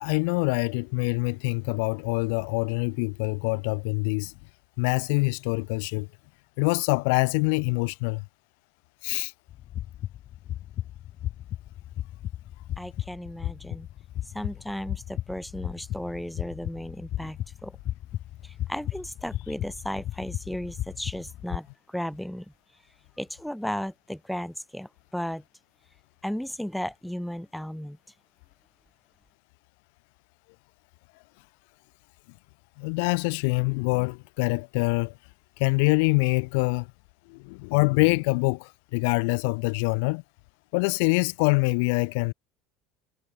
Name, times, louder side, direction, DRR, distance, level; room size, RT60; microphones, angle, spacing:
voice 1, 0.0-4.3 4.8-6.1 6.6-8.2 9.0-9.3 32.8-35.1 35.6-36.9 37.3-40.2 40.7-42.3, left 31 dB, 75° left, 0.9 m, -25 dB
sound 1, 9.5-21.6, left 13 dB, 50° left, 3.5 m, -35 dB
voice 2, 12.8-13.9 14.3-17.7 18.4-22.4 23.2-25.4 26.2-28.0, equal, ahead, 1.5 m, -35 dB
supercardioid pair, 105°, 0 cm